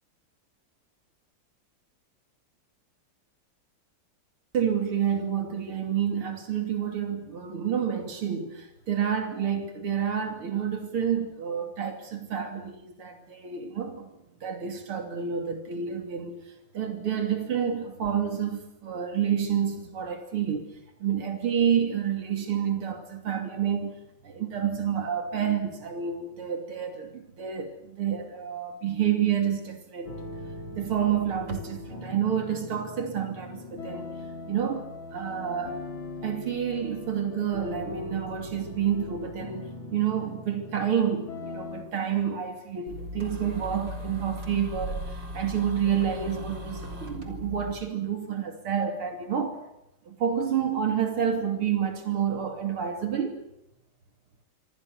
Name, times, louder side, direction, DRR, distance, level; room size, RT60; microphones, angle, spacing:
voice 1, 4.5-14.1 14.4-16.5 16.7-20.7 21.0-30.1 30.7-34.1 34.5-34.8 35.1-35.8 36.2-49.6 50.1-53.4, right 8 dB, 80° right, 3.6 m, -29 dB
sound 1, 30.0-41.8, left 2 dB, 65° left, 4.2 m, -40 dB
sound 2, 42.9-47.7, equal, 55° right, 4.6 m, -37 dB
26.5 x 25.5 x 6.7 m
omnidirectional pair, 2.4 m